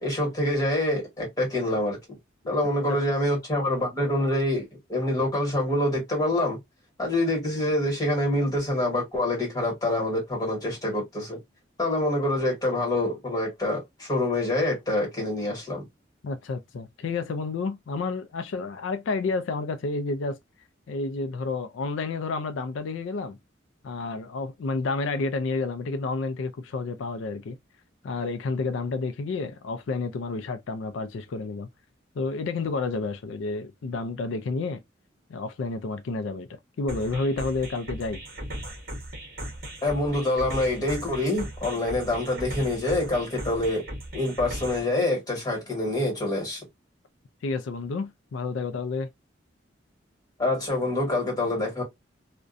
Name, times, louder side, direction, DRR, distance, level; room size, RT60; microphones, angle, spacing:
voice 1, 0.0-2.0 2.5-6.6 7.0-11.4 11.8-15.8 39.8-43.8 44.1-46.6 50.4-51.8, left 1 dB, 20° left, 1.3 m, -26 dB
voice 2, 16.2-20.4 20.9-23.4 23.8-27.6 28.0-31.7 32.2-34.8 35.3-36.5 36.8-38.2 47.4-49.1, left 3 dB, 85° left, 0.4 m, -30 dB
sound 1, 36.9-44.9, right 1 dB, 50° right, 0.8 m, -37 dB
2.4 x 2.1 x 2.4 m
head